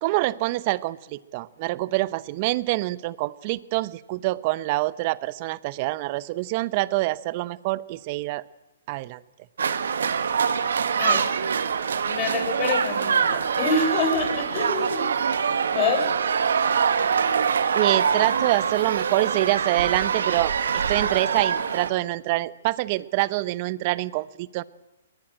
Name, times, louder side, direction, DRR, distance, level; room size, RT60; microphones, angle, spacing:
voice 1, 0.0-8.4 8.9-9.2 17.7-24.6, right 19 dB, 40° right, 19 dB, 0.8 m, -26 dB
sound 1, 9.6-21.9, right 6 dB, 75° right, 1.4 m, -24 dB
voice 2, 11.0-11.3 12.0-15.1 15.7-16.1, left 4 dB, 35° left, 5 dB, 6.8 m, -26 dB
21.5 x 20.0 x 8.8 m, 1.0 s
hypercardioid pair, 130°, 0 cm